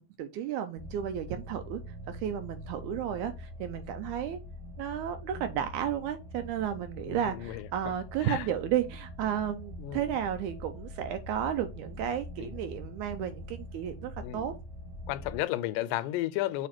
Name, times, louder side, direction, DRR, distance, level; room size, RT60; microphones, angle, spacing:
voice 1, 0.0-1.8 2.1-4.4 4.8-14.5, right 9 dB, 85° right, 1.7 m, -33 dB
sound 1, 0.7-15.4, left 1 dB, ahead, 1.0 m, -44 dB
voice 2, 7.1-7.9 8.2-8.5 9.8-10.0 12.4-12.5 14.2-14.5 15.1-16.7, left 15 dB, 80° left, 2.1 m, -33 dB
7.2 x 2.8 x 5.9 m
omnidirectional pair, 4.0 m